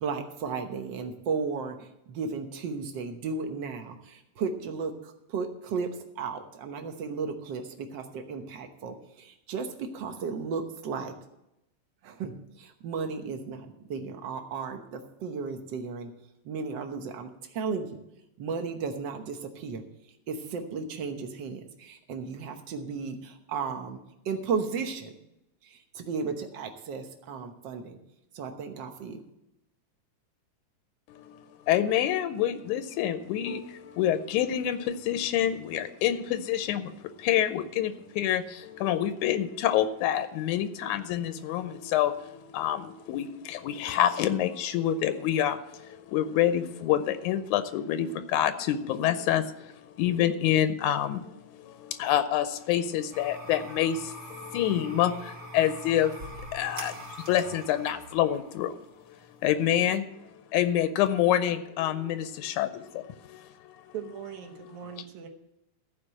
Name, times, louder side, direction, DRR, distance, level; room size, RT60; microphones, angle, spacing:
voice 1, 0.0-5.9 6.2-11.1 12.0-16.1 16.4-18.0 18.4-19.8 20.3-24.0 24.2-25.1 25.6-28.0 28.3-29.2, right 5 dB, 60° right, 5 dB, 1.2 m, -34 dB
voice 2, 31.1-31.4 31.7-58.8 59.4-60.3 60.5-63.8, left 11 dB, 85° left, 11 dB, 2.1 m, -27 dB
sound 1, 53.1-59.7, right 1 dB, 40° right, 2.5 m, -44 dB
voice 3, 63.9-65.3, right 8 dB, 80° right, 3 dB, 2.5 m, -40 dB
14.5 x 5.1 x 7.5 m, 0.86 s
omnidirectional pair, 3.4 m